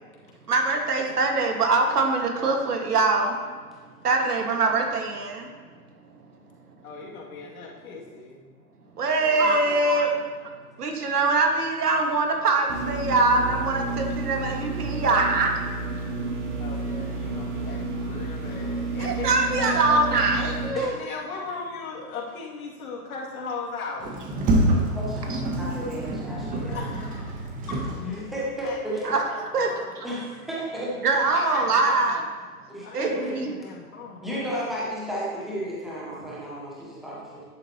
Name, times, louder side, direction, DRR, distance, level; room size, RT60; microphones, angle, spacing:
voice 1, 0.5-3.4 4.0-5.5 9.0-10.3 10.8-15.5 19.0-20.9 25.3-25.4 29.0-29.7 31.0-32.2 32.9-33.5 36.1-36.2, right 3 dB, 80° right, 2 dB, 1.8 m, -23 dB
voice 2, 6.8-8.4 16.6-20.2 20.7-24.2 26.7-28.0 28.6-29.4 29.7-30.1 31.3-32.1 32.8-34.5, left 4 dB, 65° left, -3 dB, 2.5 m, -37 dB
voice 3, 9.2-9.9 20.8-20.9 24.9-26.9 28.0-29.1 30.0-31.0 32.7-33.3 34.2-37.4, equal, ahead, -6 dB, 0.4 m, -33 dB
sound 1, 12.7-20.7, right 3 dB, 50° right, 2.1 m, -31 dB
Sliding door, 24.0-28.5, right 1 dB, 20° right, 1.1 m, -27 dB
11.0 x 7.5 x 3.0 m, 1.5 s
hypercardioid pair, 130°, 45 cm